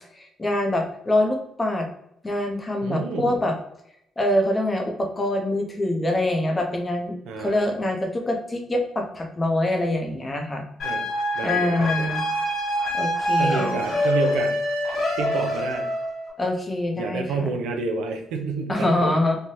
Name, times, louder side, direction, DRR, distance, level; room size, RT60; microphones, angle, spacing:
voice 1, 0.1-1.9 2.2-3.5 4.2-7.1 7.4-10.6 11.4-12.2 12.9-13.8 16.4-17.5 18.7-19.4, left 1 dB, 25° left, 2 dB, 0.7 m, -24 dB
voice 2, 2.8-3.4 7.3-7.6 10.8-11.1 11.3-12.1 13.4-14.5 15.2-15.9 17.0-19.1, right 4 dB, 90° right, 4 dB, 0.5 m, -29 dB
sound 1, 10.8-16.3, left 1 dB, 60° left, 1.2 m, -25 dB
3.2 x 2.2 x 2.7 m, 0.77 s
cardioid pair, 90°, 0 cm